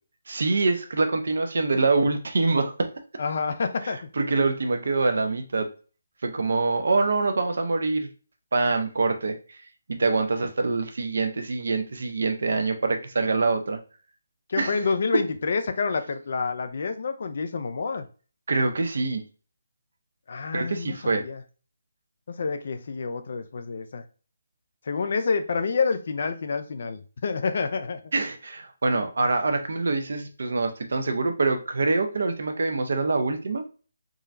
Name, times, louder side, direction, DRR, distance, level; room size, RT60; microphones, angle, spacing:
voice 1, 0.3-2.9 4.2-5.7 6.2-8.1 8.5-9.4 9.9-13.8 14.6-14.8 18.5-19.2 20.5-21.2 28.1-33.6, right 3 dB, 60° right, 6 dB, 0.7 m, -25 dB
voice 2, 3.2-4.1 14.5-18.1 20.3-21.4 22.3-24.0 24.9-28.0, left 4 dB, 50° left, 8 dB, 0.5 m, -28 dB
3.8 x 3.1 x 2.5 m, 0.36 s
figure-of-eight pair, 145°, 0 cm